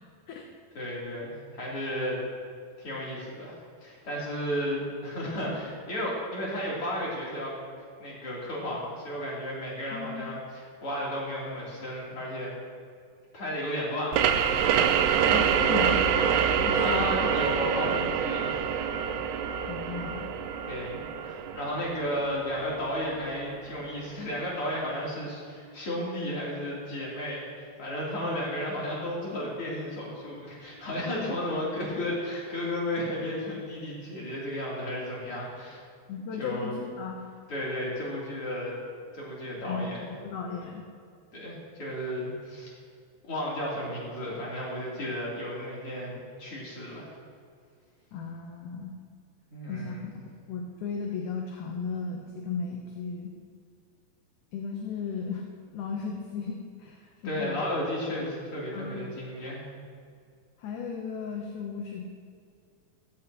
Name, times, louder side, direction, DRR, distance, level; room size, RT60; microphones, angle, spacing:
voice 1, 0.7-2.2 2.8-7.5 8.0-12.5 13.3-15.1 16.8-18.8 20.7-35.8 36.4-36.7 37.5-38.8 39.1-40.0 41.3-42.7 43.3-47.1 49.5-50.1 57.2-59.6, equal, 40° left, -6 dB, 4.0 m, -33 dB
voice 2, 9.9-10.2 13.9-14.0 15.0-16.1 16.6-17.3 17.8-17.9 19.6-20.3 36.1-37.2 39.6-39.9 40.2-40.9 48.1-48.9 49.7-50.0 50.5-53.3 54.5-55.5 55.7-57.6 58.7-59.0 60.6-62.1, left 5 dB, 70° left, 1 dB, 2.1 m, -35 dB
sound 1, 14.1-23.5, right 8 dB, 85° right, 1.7 m, -26 dB
16.0 x 14.0 x 3.0 m, 2.2 s
omnidirectional pair, 4.1 m